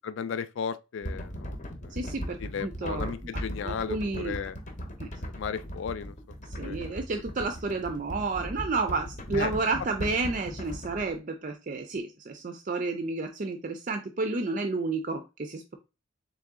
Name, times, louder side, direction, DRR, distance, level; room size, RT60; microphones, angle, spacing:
voice 1, 0.0-1.6 1.8-2.0 2.4-4.6 5.2-6.1 6.6-6.8 9.3-9.5, left 6 dB, 60° left, 0.3 m, -35 dB
sound 1, 1.0-11.1, equal, 35° left, 0.8 m, -38 dB
voice 2, 1.9-3.1 3.6-4.4 5.0-5.1 6.6-15.7, right 3 dB, 35° right, 0.4 m, -31 dB
3.8 x 3.0 x 3.6 m
head